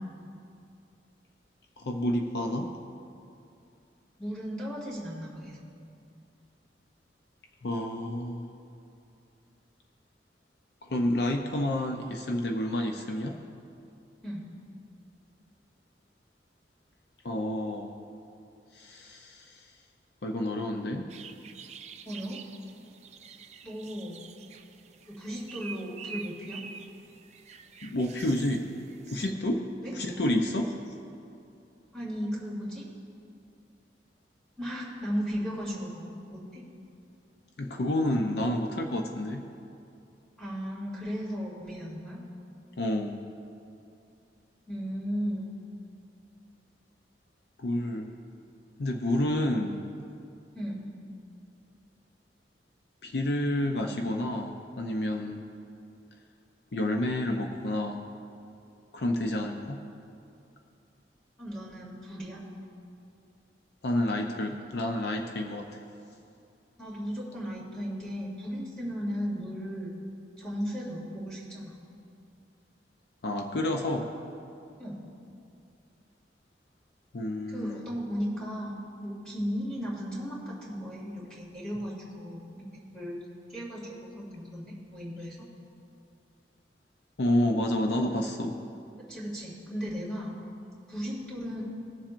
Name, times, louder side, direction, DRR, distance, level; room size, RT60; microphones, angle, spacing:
voice 1, 1.8-2.7 7.6-8.5 10.8-13.4 17.2-18.0 18.7-19.7 20.2-21.1 27.8-28.7 29.1-29.7 29.9-30.7 37.6-39.5 42.8-43.2 47.6-48.1 48.8-49.8 53.0-55.4 56.7-58.1 58.9-59.8 63.8-65.8 73.2-74.1 77.1-77.9 87.2-88.6, left 1 dB, 65° left, 3 dB, 0.6 m, -29 dB
voice 2, 4.2-5.7 14.2-14.5 22.0-22.4 23.6-24.2 25.2-26.6 29.8-29.9 31.9-32.9 34.6-36.6 40.4-42.2 44.7-45.6 50.5-50.9 61.4-62.4 66.8-69.9 70.4-71.7 74.8-75.0 77.5-83.2 83.5-85.5 89.0-90.3 90.9-91.6, equal, 5° left, -6 dB, 2.5 m, -36 dB
sound 1, 21.1-29.3, right 6 dB, 40° right, 0.4 m, -47 dB
20.5 x 7.2 x 2.6 m, 2.6 s
head